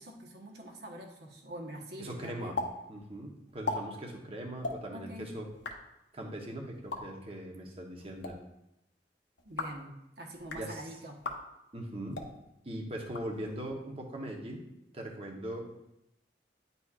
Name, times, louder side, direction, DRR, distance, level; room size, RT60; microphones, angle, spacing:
voice 1, 0.0-2.6 4.9-5.3 9.4-11.2, right 1 dB, 65° right, 1 dB, 1.1 m, -45 dB
voice 2, 2.0-2.6 2.9-5.4 6.1-8.4 10.5-10.8 11.7-12.2 12.6-14.6 14.9-15.7, right 1 dB, 35° right, 1 dB, 0.9 m, -40 dB
sound 1, 2.5-2.7 3.0-3.1 3.5-3.8 4.6-4.8 5.4-5.7 6.7-7.0 8.0-8.3 9.4-9.8 10.3-10.6 11.2-11.4 12.1-12.3 13.0-13.7, left 3 dB, 85° left, 0.8 m, -37 dB
9.7 x 4.1 x 2.4 m, 0.85 s
head